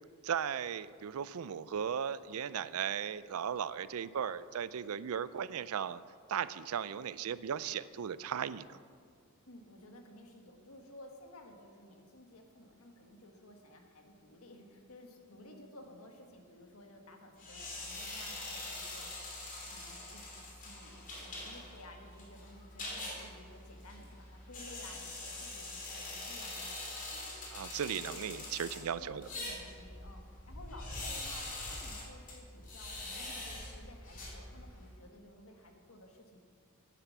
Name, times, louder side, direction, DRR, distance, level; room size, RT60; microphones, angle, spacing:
voice 1, 0.2-6.0 6.3-8.8 27.5-29.3, right 8 dB, 80° right, 16 dB, 0.4 m, -36 dB
voice 2, 9.4-27.3 27.8-28.5 29.0-36.4, left 1 dB, 75° left, 3 dB, 1.6 m, -55 dB
sound 1, 17.4-34.9, left 2 dB, 40° left, 2.9 m, -44 dB
10.0 x 10.0 x 6.0 m, 2.2 s
head